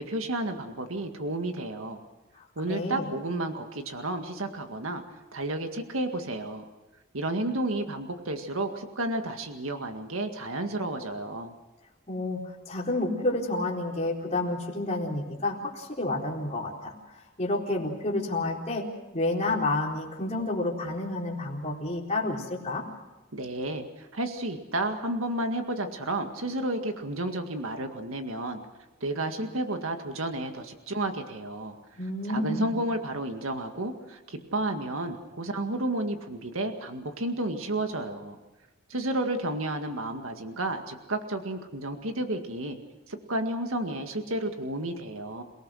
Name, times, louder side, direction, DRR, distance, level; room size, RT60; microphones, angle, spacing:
voice 1, 0.0-2.0 2.6-5.0 5.3-6.6 7.1-11.5 23.3-28.6 29.0-31.8 32.3-38.4 38.9-42.8 43.1-45.4, right 1 dB, 80° right, 5 dB, 1.9 m, -32 dB
voice 2, 2.4-3.1 12.1-18.9 19.1-22.8 32.0-32.7, left 2 dB, 30° left, -2 dB, 4.1 m, -30 dB
28.0 x 18.5 x 6.4 m, 1.1 s
head